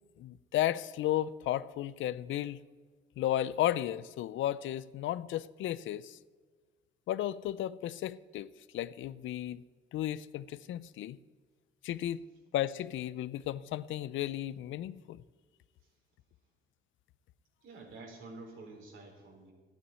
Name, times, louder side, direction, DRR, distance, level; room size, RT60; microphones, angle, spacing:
voice 1, 0.2-2.6 3.2-6.2 7.1-9.6 9.9-11.2 11.8-12.2 12.5-15.2, left 12 dB, 75° left, 17 dB, 0.5 m, -34 dB
voice 2, 17.6-19.5, right 3 dB, 85° right, 1 dB, 4.0 m, -49 dB
12.5 x 9.1 x 9.4 m, 1.5 s
cardioid pair, 90°, 20 cm